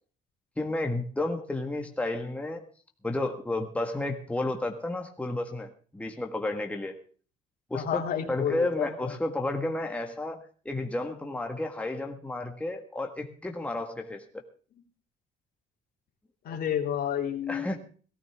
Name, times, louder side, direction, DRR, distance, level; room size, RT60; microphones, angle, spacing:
voice 1, 0.6-2.6 3.0-7.0 7.7-14.4 17.5-17.8, left 2 dB, 10° left, 3 dB, 1.7 m, -32 dB
voice 2, 7.7-9.1 16.4-17.8, left 9 dB, 60° left, 3 dB, 3.1 m, -30 dB
18.5 x 13.5 x 3.6 m, 0.41 s
cardioid pair, 110°, 17 cm